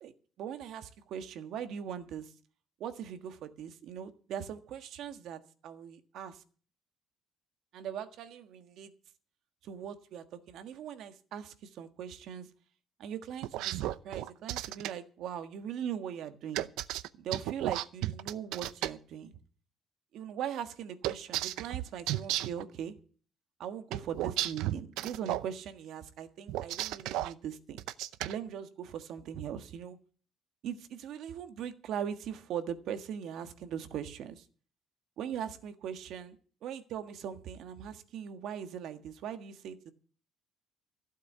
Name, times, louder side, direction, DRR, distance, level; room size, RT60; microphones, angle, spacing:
voice 1, 0.4-2.3 2.8-6.4 7.7-8.9 9.6-12.5 13.0-16.7 17.1-19.4 20.1-23.0 23.6-27.8 28.2-30.0 30.6-34.4 35.2-39.9, right 8 dB, 60° right, 9 dB, 1.5 m, -40 dB
sound 1, 13.4-14.9 16.5-18.9 21.0-22.6 23.9-25.5 26.5-27.3 27.8-28.3, right 14 dB, 85° right, 0.7 m, -33 dB
15.0 x 8.4 x 6.8 m, 0.42 s
cardioid pair, 165°, 0 cm